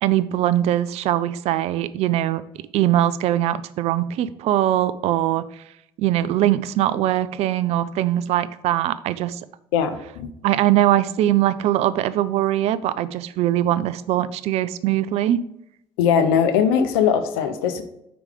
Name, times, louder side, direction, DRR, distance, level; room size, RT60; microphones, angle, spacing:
voice 1, 0.0-2.4 2.7-5.5 6.0-9.4 10.4-15.4, right 12 dB, 55° right, 15 dB, 0.4 m, -21 dB
voice 2, 9.7-10.3 16.0-17.8, left 7 dB, 75° left, 9 dB, 0.6 m, -20 dB
5.1 x 4.8 x 5.0 m, 0.79 s
figure-of-eight pair, 50°, 13 cm